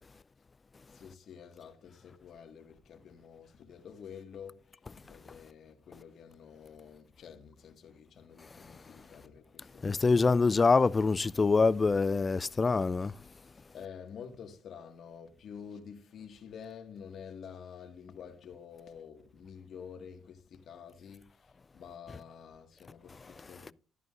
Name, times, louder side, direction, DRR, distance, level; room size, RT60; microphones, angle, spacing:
voice 1, 0.9-10.5 13.7-23.7, left 7 dB, 65° left, 1.8 m, -49 dB
voice 2, 9.8-13.1, left 4 dB, 30° left, 0.3 m, -25 dB
13.0 x 9.2 x 2.5 m
cardioid pair, 90°, 0 cm